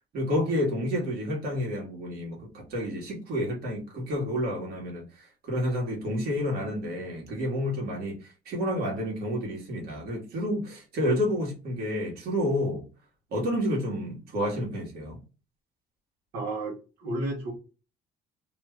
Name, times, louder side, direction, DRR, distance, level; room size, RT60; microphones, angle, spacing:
voice 1, 0.1-12.8 13.3-15.2, equal, 65° right, 1.7 m, -30 dB
voice 2, 16.3-17.5, right 2 dB, 85° right, 1.5 m, -32 dB
3.0 x 2.4 x 3.1 m
cardioid pair, 110°, 17 cm